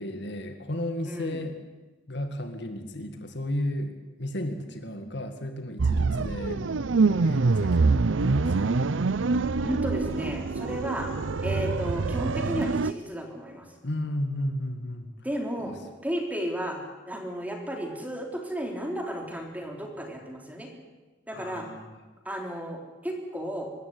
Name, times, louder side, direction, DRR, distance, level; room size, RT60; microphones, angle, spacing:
voice 1, 0.0-1.6 2.1-6.6 7.0-8.8 13.8-15.1 15.6-15.8 21.3-22.0, left 1 dB, 65° left, 7 dB, 2.0 m, -34 dB
voice 2, 1.1-1.4 9.6-11.1 11.4-13.7 15.2-15.7 16.0-16.8 17.1-20.7 21.3-21.7 22.3-23.7, equal, 10° right, 2 dB, 3.7 m, -33 dB
sound 1, 5.8-12.9, right 4 dB, 90° right, 0.6 m, -25 dB
25.0 x 14.0 x 9.7 m, 1.2 s
head